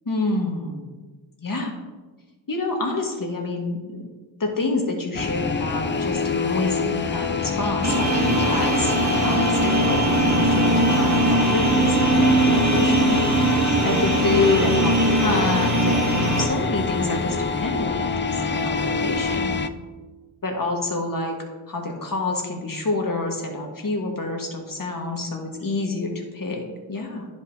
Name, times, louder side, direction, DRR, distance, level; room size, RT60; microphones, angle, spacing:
voice 1, 0.0-0.9 1.4-1.7 2.5-4.0 4.4-13.2 13.5-19.5 20.4-21.4 21.7-27.3, left 3 dB, 45° left, 1 dB, 1.6 m, -27 dB
sound 1, 5.1-19.7, left 4 dB, 25° left, 0.4 m, -26 dB
sound 2, 7.8-16.5, right 2 dB, 35° right, 1.1 m, -21 dB
10.5 x 5.0 x 2.8 m, 1.3 s
cardioid pair, 45°, 48 cm